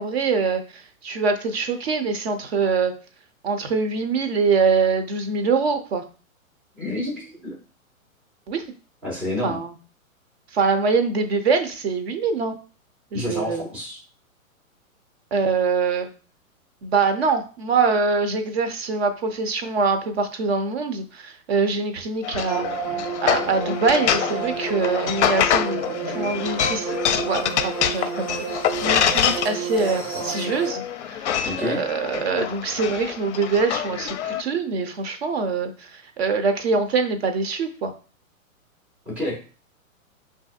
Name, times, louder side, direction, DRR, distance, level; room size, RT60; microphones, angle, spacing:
voice 1, 0.0-2.9 3.4-6.0 8.5-8.6 9.4-9.7 10.5-12.6 13.1-13.7 15.3-16.1 16.8-22.6 23.2-31.3 31.6-37.9, right 4 dB, 50° right, 7 dB, 0.7 m, -24 dB
voice 2, 6.8-7.6 9.0-9.6 13.1-14.0 31.4-31.8 39.1-39.4, left 1 dB, ahead, -6 dB, 0.4 m, -29 dB
sound 1, 22.2-34.4, left 9 dB, 55° left, 0.5 m, -26 dB
sound 2, 22.5-30.7, right 7 dB, 75° right, 1.6 m, -31 dB
5.5 x 2.7 x 2.4 m, 0.38 s
figure-of-eight pair, 110°, 42 cm